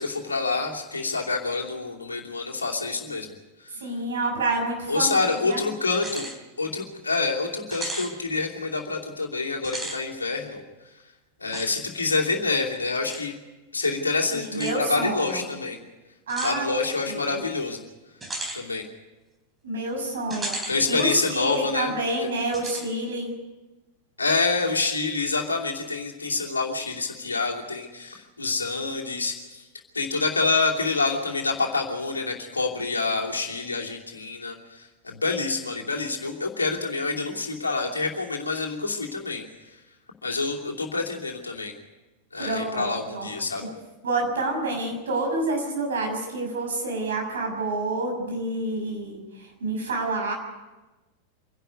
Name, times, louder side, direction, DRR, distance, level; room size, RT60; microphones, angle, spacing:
voice 1, 0.0-3.3 3.6-3.8 4.9-6.3 6.6-10.6 11.4-13.3 13.7-15.8 16.4-17.8 18.5-18.8 20.7-21.9 22.2-22.3 24.2-29.6 29.9-39.4 40.2-41.7 42.3-43.6, left 3 dB, 75° left, 0 dB, 2.8 m, -27 dB
voice 2, 3.8-5.6 14.3-15.4 16.3-16.7 17.0-17.4 19.6-23.3 42.4-43.3 43.6-43.7 44.0-50.3, right 2 dB, 65° right, 1 dB, 6.7 m, -28 dB
sound 1, 5.9-6.4 6.8-6.9 7.7-8.1 9.6-10.0 11.5-11.7 13.1-13.2 14.5-14.8 16.3-16.6 18.2-18.6 20.3-20.8 21.2-21.3 22.5-22.9, right 2 dB, 15° right, 3.6 m, -34 dB
26.0 x 11.5 x 9.3 m, 1.1 s
figure-of-eight pair, 90°, 0 cm